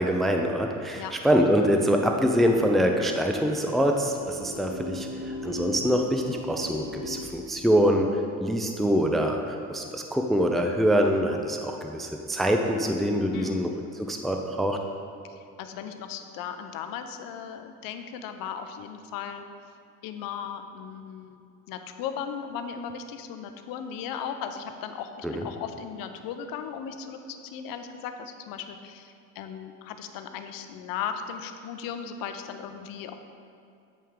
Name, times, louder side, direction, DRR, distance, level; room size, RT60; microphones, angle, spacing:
voice 1, 0.0-5.1 5.4-8.1 8.4-13.7 14.0-14.8 25.2-25.4, equal, ahead, 3 dB, 0.5 m, -24 dB
sound 1, 2.2-7.2, left 2 dB, 20° right, 1.0 m, -39 dB
voice 2, 13.3-13.6 15.3-19.5 20.0-21.4 21.7-33.1, left 7 dB, 65° left, 7 dB, 0.7 m, -37 dB
8.9 x 5.5 x 3.7 m, 2.6 s
supercardioid pair, 75°, 36 cm